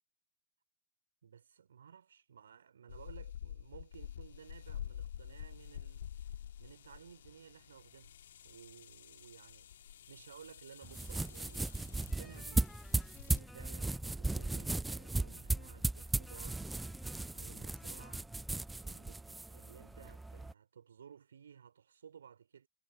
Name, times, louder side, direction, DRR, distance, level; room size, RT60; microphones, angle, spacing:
voice 1, 1.2-6.1 6.6-8.2 8.4-9.7 10.1-12.7 13.3-16.6 17.3-18.2 18.8-22.7, right 7 dB, 70° right, 3.6 m, -56 dB
sound 1, 2.9-13.4, left 10 dB, 65° left, 2.3 m, -49 dB
sound 2, 10.8-20.5, right 2 dB, 5° right, 0.4 m, -37 dB
sound 3, 12.1-18.7, left 3 dB, 10° left, 1.0 m, -55 dB
figure-of-eight pair, 90°, 0 cm